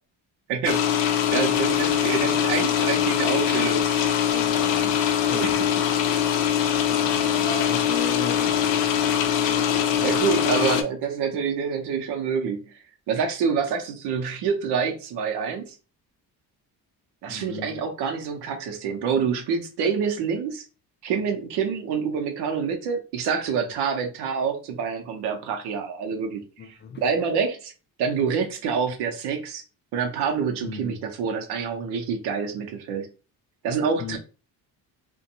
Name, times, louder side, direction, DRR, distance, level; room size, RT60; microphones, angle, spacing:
voice 1, 0.5-1.0 1.3-3.9 5.3-5.5 10.0-12.7 13.1-15.7 17.2-20.7 21.0-27.7 28.0-29.6 29.9-33.1 33.6-34.2, right 6 dB, 85° right, 0.7 m, -27 dB
sound 1, 0.6-10.8, left 9 dB, 90° left, 0.5 m, -22 dB
voice 2, 4.3-6.0 6.8-10.6 17.3-17.8 26.6-27.0 30.6-31.0 34.0-34.2, left 4 dB, 30° left, 0.4 m, -37 dB
2.5 x 2.2 x 2.7 m
cardioid pair, 90°, 39 cm